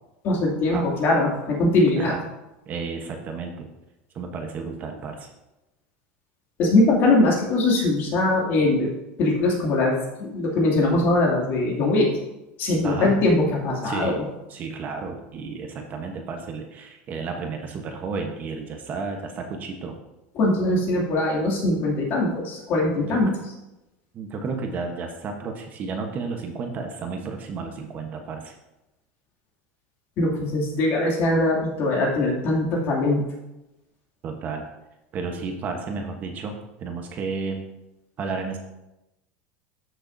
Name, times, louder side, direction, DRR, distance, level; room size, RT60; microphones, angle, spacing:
voice 1, 0.2-2.2 6.6-8.9 9.2-12.1 12.6-14.2 20.3-23.3 30.2-33.2, left 2 dB, 45° left, -2 dB, 2.5 m, -21 dB
voice 2, 2.7-3.7 4.1-5.3 12.8-13.2 13.8-14.2 14.5-20.0 23.0-23.2 24.1-28.5 34.2-34.7 35.1-36.5 36.8-37.7 38.2-38.6, right 4 dB, 35° right, 3 dB, 1.0 m, -32 dB
12.5 x 6.4 x 2.7 m, 0.97 s
supercardioid pair, 145°, 5 cm